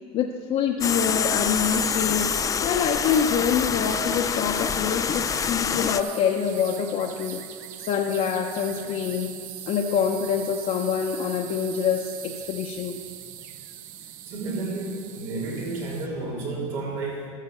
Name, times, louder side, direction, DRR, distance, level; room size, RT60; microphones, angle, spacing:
voice 1, 0.1-7.4 7.9-9.3 9.7-13.0, left 7 dB, 45° left, 0 dB, 0.8 m, -26 dB
sound 1, 0.8-6.0, left 7 dB, 20° left, 0.3 m, -26 dB
sound 2, 1.4-16.1, right 11 dB, 55° right, 0.7 m, -41 dB
voice 2, 14.3-17.3, right 3 dB, 85° right, -4 dB, 3.7 m, -31 dB
13.5 x 6.7 x 6.7 m, 2.2 s
supercardioid pair, 125°, 17 cm